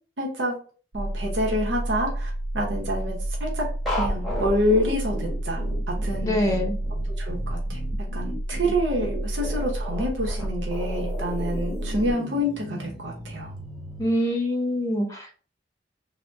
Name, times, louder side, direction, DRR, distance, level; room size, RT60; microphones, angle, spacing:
voice 1, 0.2-0.5 0.9-3.1 3.4-3.7 4.0-5.6 6.0-6.3 7.2-7.8 8.1-13.5, equal, 90° right, 0 dB, 0.8 m, -27 dB
sound 1, 0.9-12.1, right 1 dB, 65° right, 0.4 m, -30 dB
sound 2, 3.9-14.1, equal, ahead, 1.0 m, -35 dB
voice 2, 6.2-6.8 14.0-15.3, equal, 20° left, 1 dB, 0.7 m, -24 dB
3.3 x 2.1 x 2.5 m, 0.40 s
head